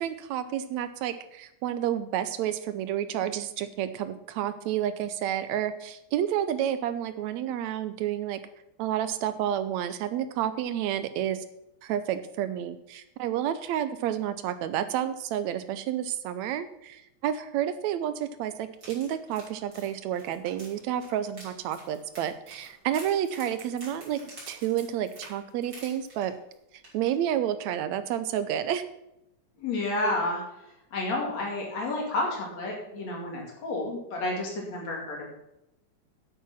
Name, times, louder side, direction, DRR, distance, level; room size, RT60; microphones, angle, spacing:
voice 1, 0.0-8.4 8.8-11.5 11.8-24.2 24.5-26.3 26.9-28.8, right 10 dB, 75° right, 12 dB, 1.9 m, -30 dB
sound 1, 18.7-26.5 26.8-27.1 27.4-27.5, right 1 dB, 30° right, 4.4 m, -48 dB
voice 2, 29.6-30.4 30.9-35.3, left 2 dB, 60° left, -1 dB, 3.7 m, -30 dB
9.4 x 8.6 x 5.8 m, 0.84 s
omnidirectional pair, 3.5 m